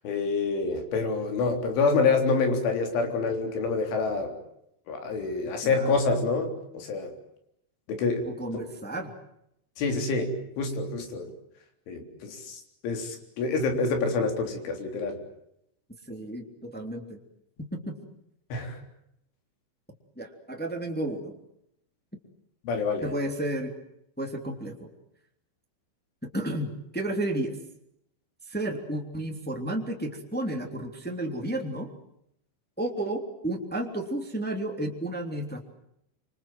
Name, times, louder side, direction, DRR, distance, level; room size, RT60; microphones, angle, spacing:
voice 1, 0.0-4.3 4.9-7.1 7.9-8.3 8.5-8.6 9.8-11.3 11.9-15.2 18.5-18.8 22.6-23.1, left 4 dB, 85° left, 4 dB, 6.1 m, -27 dB
voice 2, 5.6-6.0 8.2-9.1 16.1-17.2 17.7-18.0 20.2-21.3 23.0-23.7 24.2-24.9 26.3-27.6 28.5-31.9 32.8-35.6, right 1 dB, 5° left, 2 dB, 2.0 m, -32 dB
27.0 x 25.5 x 7.7 m, 0.77 s
omnidirectional pair, 5.4 m